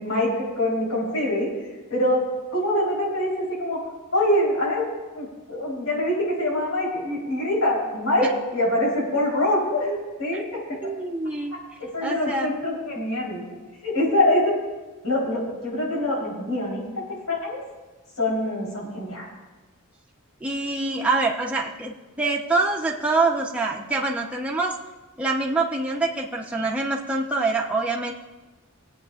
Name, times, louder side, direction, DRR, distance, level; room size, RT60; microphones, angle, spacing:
voice 1, 0.0-1.5 1.9-2.2 2.5-3.8 4.1-4.9 5.1-8.3 8.5-10.4 11.8-13.4 13.8-14.5 15.0-17.6 18.2-19.3, left 1 dB, 80° left, -4 dB, 4.1 m, -24 dB
voice 2, 10.8-11.6 12.0-12.5 20.4-24.8 25.2-28.1, right 3 dB, 5° right, -2 dB, 0.9 m, -25 dB
25.5 x 8.7 x 2.5 m, 1.2 s
head